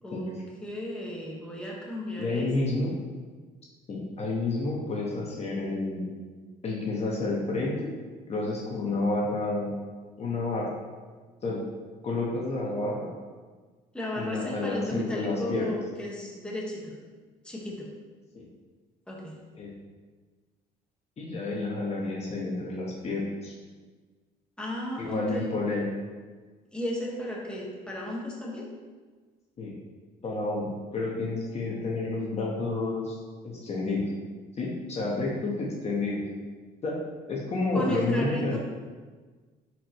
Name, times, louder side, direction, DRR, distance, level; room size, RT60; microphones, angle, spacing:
voice 1, 0.0-2.5 13.9-16.9 17.4-17.9 19.1-19.4 24.6-25.5 26.7-28.7 37.7-38.6, left 1 dB, 5° left, -4 dB, 1.6 m, -34 dB
voice 2, 2.2-2.9 3.9-6.0 6.6-7.9 8.3-9.7 10.2-10.7 11.4-11.6 12.0-13.1 14.1-15.7 18.3-18.4 19.5-19.7 21.2-23.5 25.0-25.9 29.6-29.8 30.2-33.2 33.4-34.1 34.6-36.3 36.8-37.0 37.3-38.6, left 2 dB, 40° left, -3 dB, 1.4 m, -30 dB
9.7 x 4.8 x 3.2 m, 1.4 s
cardioid pair, 110°, 17 cm